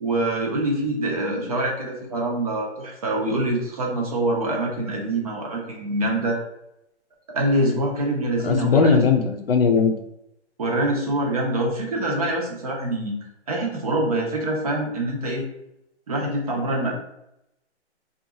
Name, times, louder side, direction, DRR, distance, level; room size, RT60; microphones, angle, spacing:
voice 1, 0.0-6.4 7.3-9.0 10.6-13.1 13.5-15.4 16.1-16.9, right 1 dB, 35° right, 0 dB, 0.7 m, -25 dB
voice 2, 8.4-9.9, left 5 dB, 55° left, 5 dB, 0.5 m, -19 dB
2.6 x 2.4 x 3.8 m, 0.83 s
hypercardioid pair, 155°, 35 cm